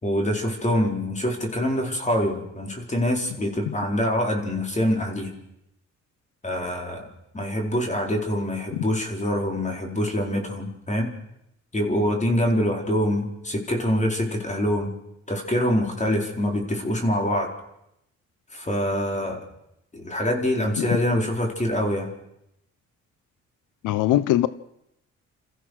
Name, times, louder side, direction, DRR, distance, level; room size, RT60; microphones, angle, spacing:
voice 1, 0.0-5.3 6.4-7.1 7.3-11.1 11.7-14.9 15.3-17.5 18.5-19.5 19.9-22.1, equal, 25° left, 2 dB, 4.3 m, -25 dB
voice 2, 23.8-24.5, left 14 dB, 85° left, 16 dB, 0.8 m, -21 dB
28.0 x 14.5 x 6.4 m, 0.82 s
cardioid pair, 90°, 30 cm